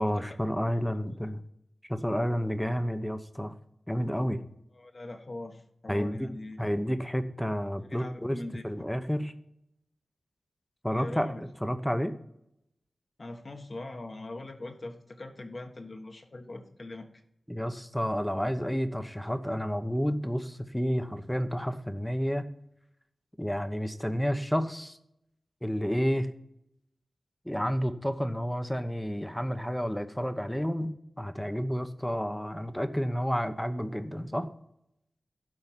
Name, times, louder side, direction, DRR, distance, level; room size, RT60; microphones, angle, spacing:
voice 1, 0.0-1.4 1.9-3.5 3.9-4.4 5.9-6.3 6.6-8.4 8.6-9.3 10.8-12.1 17.5-22.4 23.4-25.0 25.6-26.3 27.5-34.5, equal, 5° left, 9 dB, 0.9 m, -30 dB
voice 2, 4.7-6.6 7.9-8.6 10.9-11.4 13.2-17.1, left 2 dB, 50° left, 5 dB, 1.4 m, -42 dB
12.0 x 4.8 x 7.3 m, 0.77 s
wide cardioid pair, 65°, 0 cm